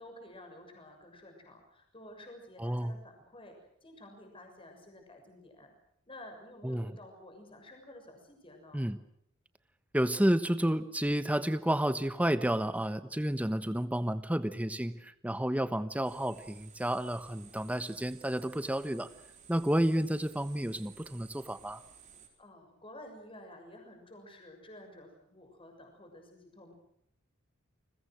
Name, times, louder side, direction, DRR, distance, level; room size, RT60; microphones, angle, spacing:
voice 1, 0.0-5.7 6.1-8.8 22.4-26.7, left 1 dB, 25° left, 4 dB, 6.7 m, -52 dB
voice 2, 2.6-2.9 6.6-7.0 8.7-9.0 9.9-19.1 19.5-21.8, right 1 dB, 5° right, 12 dB, 1.1 m, -31 dB
sound 1, 16.0-22.3, right 7 dB, 35° right, 4.5 m, -56 dB
30.0 x 21.5 x 6.3 m, 0.72 s
head